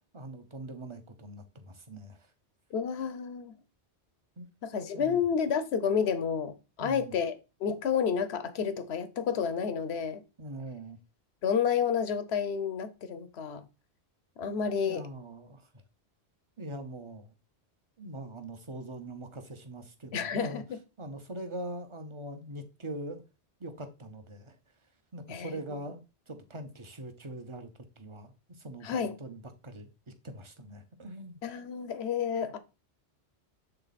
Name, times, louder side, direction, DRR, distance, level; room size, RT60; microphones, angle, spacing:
voice 1, 0.1-2.2 4.4-4.5 4.9-5.2 6.8-7.1 10.4-11.0 14.8-15.6 16.6-17.3 18.0-20.6 21.0-23.2 23.6-24.5 25.1-26.0 26.3-27.7 28.0-29.9 30.2-31.4, right 1 dB, 30° right, 0.9 m, -42 dB
voice 2, 2.7-3.5 4.6-10.2 11.4-13.7 14.4-15.1 20.1-20.8 25.3-25.8 28.8-29.2 31.4-32.6, left 7 dB, 75° left, 1.1 m, -30 dB
7.9 x 3.7 x 4.1 m
omnidirectional pair, 1.1 m